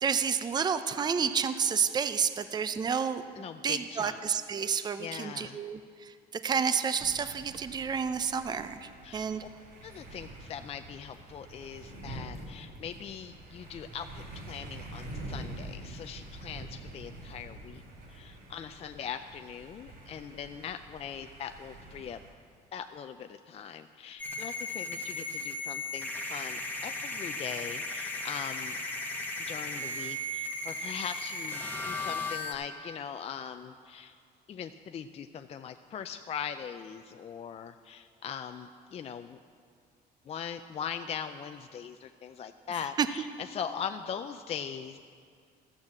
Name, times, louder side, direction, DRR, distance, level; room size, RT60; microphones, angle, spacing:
voice 1, 0.0-9.4 43.0-43.1, right 6 dB, 25° right, 11 dB, 0.5 m, -30 dB
voice 2, 3.4-4.2 5.0-5.6 9.0-9.3 9.8-17.8 18.1-22.2 22.7-28.8 29.5-34.2 34.5-39.4 40.3-45.0, left 7 dB, 35° left, 8 dB, 0.4 m, -41 dB
sound 1, 7.0-22.3, right 1 dB, 70° right, 3.3 m, -46 dB
sound 2, 24.2-32.5, left 2 dB, 10° left, 1.3 m, -36 dB
13.5 x 6.5 x 7.1 m, 2.2 s
cardioid pair, 110°, 17 cm